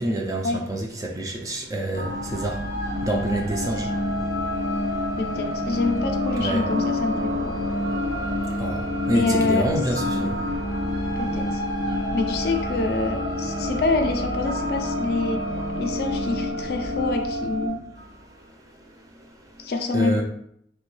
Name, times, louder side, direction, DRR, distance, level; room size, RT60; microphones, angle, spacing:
voice 1, 0.0-5.2 6.4-6.7 7.8-10.6 10.9-11.0 18.4-19.7 19.9-20.2, right 1 dB, 20° right, 0.3 m, -29 dB
sound 1, 1.9-18.2, equal, 75° right, 1.0 m, -29 dB
sound 2, 3.5-17.7, left 2 dB, 55° right, 1.2 m, -31 dB
voice 2, 5.2-7.5 9.1-9.7 11.2-11.6 12.1-15.5 15.8-17.8 19.6-20.2, left 3 dB, 55° left, 0.4 m, -26 dB
3.1 x 2.2 x 3.1 m
head